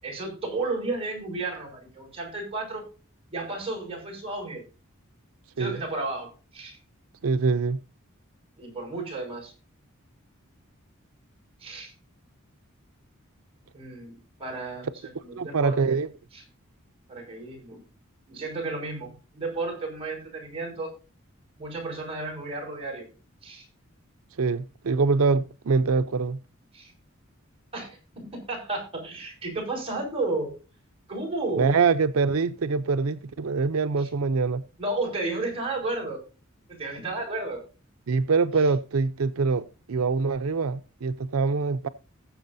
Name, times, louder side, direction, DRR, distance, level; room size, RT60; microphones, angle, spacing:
voice 1, 0.0-2.9 3.3-4.6 5.6-6.8 8.6-9.5 11.6-11.9 13.7-14.9 15.2-16.0 16.3-16.4 17.1-17.8 18.3-20.9 21.6-23.1 23.4-23.7 26.7-26.9 27.7-30.5 31.1-31.7 34.0-34.1 34.8-36.2 36.7-37.6 38.6-38.7, right 2 dB, 30° right, 5.6 m, -33 dB
voice 2, 7.2-7.8 15.3-16.1 24.4-26.4 31.6-34.6 38.1-41.9, right 4 dB, 80° right, 0.5 m, -24 dB
19.5 x 7.5 x 2.6 m
head